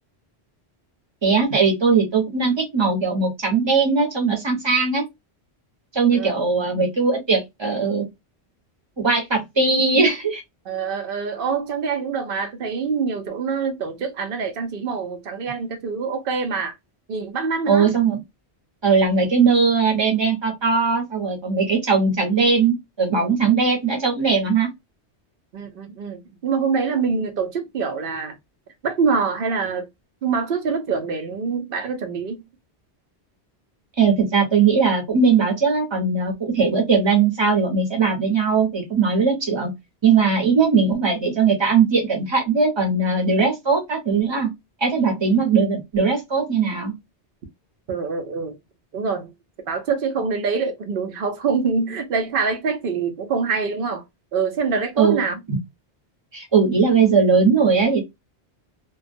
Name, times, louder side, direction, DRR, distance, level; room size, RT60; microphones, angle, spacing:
voice 1, 1.2-5.0 5.9-8.0 9.0-10.4 17.7-18.2 18.8-24.7 34.0-39.7 40.0-44.5 44.8-46.9 55.0-55.2 56.3-58.1, right 5 dB, 25° right, 0.9 m, -19 dB
voice 2, 10.7-16.7 17.1-17.9 25.5-28.4 28.8-29.9 30.2-32.4 47.9-48.6 48.9-49.3 49.7-54.0 54.3-55.4, right 5 dB, 60° right, 0.8 m, -25 dB
2.3 x 2.2 x 2.5 m
omnidirectional pair, 1.1 m